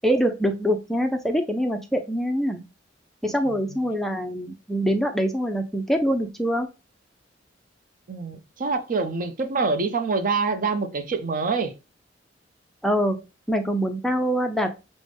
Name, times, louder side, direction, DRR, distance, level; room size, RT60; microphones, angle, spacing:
voice 1, 0.0-2.6 3.2-6.7 12.8-13.2 13.5-14.7, equal, ahead, 0.3 m, -24 dB
voice 2, 3.5-3.8 8.1-11.7, right 4 dB, 50° right, 0.5 m, -26 dB
5.1 x 2.1 x 3.3 m
head